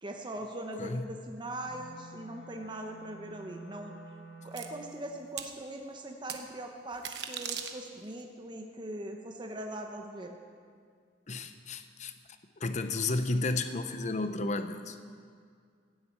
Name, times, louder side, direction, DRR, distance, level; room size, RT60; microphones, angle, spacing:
voice 1, 0.0-4.0 4.4-10.4, right 1 dB, 25° right, 3 dB, 1.0 m, -41 dB
voice 2, 0.8-1.1 11.3-12.1 12.6-15.0, left 2 dB, 45° left, 9 dB, 0.8 m, -32 dB
Wind instrument woodwind instrument, 1.6-5.0, right 1 dB, 65° left, 1.4 m, -50 dB
sound 1, 4.6-4.7 5.4-5.5 6.3-6.4 6.9-8.1, right 8 dB, 70° right, 1.0 m, -38 dB
15.5 x 7.8 x 8.5 m, 2.1 s
head